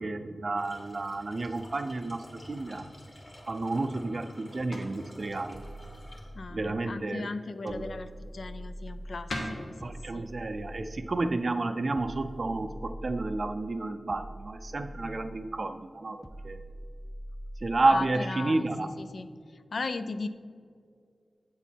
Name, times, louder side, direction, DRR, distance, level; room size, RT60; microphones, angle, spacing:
voice 1, 0.0-2.9 3.5-5.6 6.5-7.3 7.6-7.9 9.8-16.6 17.6-18.9, right 2 dB, 45° right, 9 dB, 0.4 m, -31 dB
sound 1, 0.6-6.2, equal, 40° left, 2.0 m, -50 dB
sound 2, 3.5-12.7, left 1 dB, 90° left, 1.1 m, -46 dB
sound 3, 5.5-6.8 7.7-9.3 9.8-11.2 11.9-13.6 14.1-15.5 16.2-17.8, right 1 dB, 5° left, 0.5 m, -43 dB
voice 2, 6.3-10.2 17.9-18.7 19.0-19.3 19.7-20.3, left 3 dB, 65° left, 12 dB, 0.4 m, -37 dB
7.9 x 7.1 x 4.4 m, 2.2 s
wide cardioid pair, 105°, 0 cm